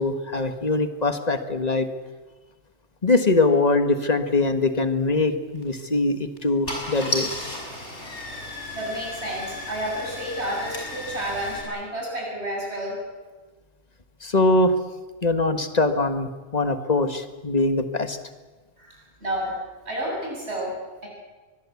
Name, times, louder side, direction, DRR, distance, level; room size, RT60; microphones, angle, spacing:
voice 1, 0.0-1.9 3.0-7.3 14.2-14.7 15.2-18.2, left 2 dB, 35° left, 9 dB, 1.7 m, -22 dB
Car / Engine starting, 5.6-5.8 6.4-6.5 6.7-11.6, left 1 dB, 90° left, 6.2 m, -33 dB
voice 2, 8.7-13.0 18.8-21.1, right 1 dB, 70° right, -2 dB, 8.5 m, -31 dB
24.0 x 21.0 x 8.4 m, 1.3 s
omnidirectional pair, 1.1 m